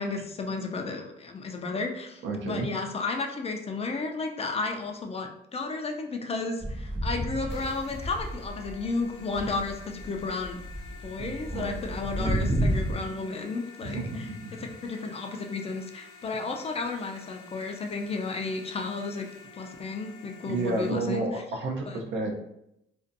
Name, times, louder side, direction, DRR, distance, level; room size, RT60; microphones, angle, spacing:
voice 1, 0.0-10.6 11.0-14.2 14.8-19.2 19.5-21.3 21.9-22.0, left 3 dB, 30° left, 3 dB, 0.4 m, -33 dB
voice 2, 2.2-2.7 11.2-11.8 12.1-12.5 13.8-14.6 20.5-22.3, right 3 dB, 70° right, 2 dB, 0.5 m, -32 dB
sound 1, 6.6-8.9 9.2-12.9, equal, 20° right, 0.6 m, -31 dB
sound 2, 7.5-20.9, left 5 dB, 80° left, 0.6 m, -50 dB
2.6 x 2.2 x 2.5 m, 0.80 s
cardioid pair, 90°, 20 cm